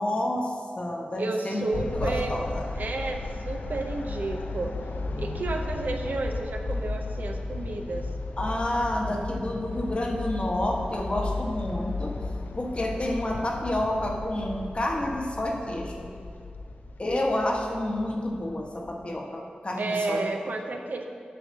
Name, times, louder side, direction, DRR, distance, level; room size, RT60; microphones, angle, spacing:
voice 1, 0.0-1.6 1.9-2.7 8.4-12.1 12.6-16.1 17.0-20.2 20.7-20.8, left 1 dB, 40° left, 1 dB, 1.1 m, -29 dB
voice 2, 1.2-2.4 2.7-4.7 5.2-8.1 19.8-21.1, right 3 dB, 75° right, 4 dB, 0.7 m, -31 dB
sound 1, 1.7-19.2, left 3 dB, 85° left, 0.5 m, -35 dB
7.0 x 4.7 x 6.5 m, 2.3 s
wide cardioid pair, 75°, 3 cm